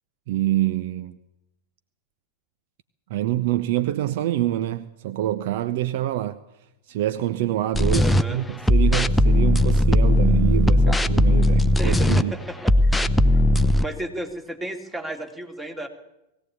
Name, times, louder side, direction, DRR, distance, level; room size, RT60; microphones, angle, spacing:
voice 1, 0.3-1.2 3.1-6.4 6.9-12.3, right 13 dB, 50° right, 0.8 m, -26 dB
sound 1, 7.7-8.2 8.7-12.2 12.6-13.9, left 1 dB, 5° left, 0.9 m, -18 dB
voice 2, 7.9-8.4 10.9-11.0 11.8-13.1 13.3-13.4 13.8-15.9, right 1 dB, 10° right, 2.8 m, -33 dB
20.0 x 16.5 x 8.4 m
figure-of-eight pair, 90°, 0 cm